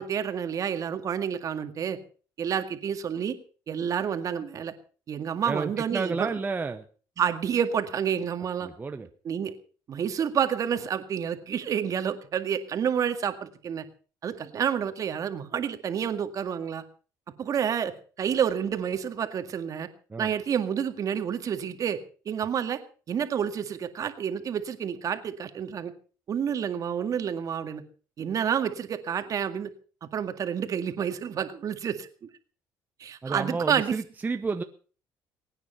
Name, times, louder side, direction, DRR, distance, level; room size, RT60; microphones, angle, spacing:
voice 1, 0.0-2.0 2.4-3.4 3.7-4.7 5.1-6.3 7.2-8.7 9.2-9.5 9.9-13.8 14.2-16.8 17.4-19.9 20.2-22.0 22.3-22.8 23.1-25.9 26.3-27.8 28.2-29.7 30.1-32.1 33.0-34.0, right 8 dB, 45° right, 8 dB, 2.0 m, -29 dB
voice 2, 5.5-6.9 8.6-9.1 20.1-20.3 33.2-34.6, right 4 dB, 20° right, 7 dB, 1.0 m, -31 dB
22.5 x 9.5 x 5.7 m, 0.40 s
cardioid pair, 100°, 8 cm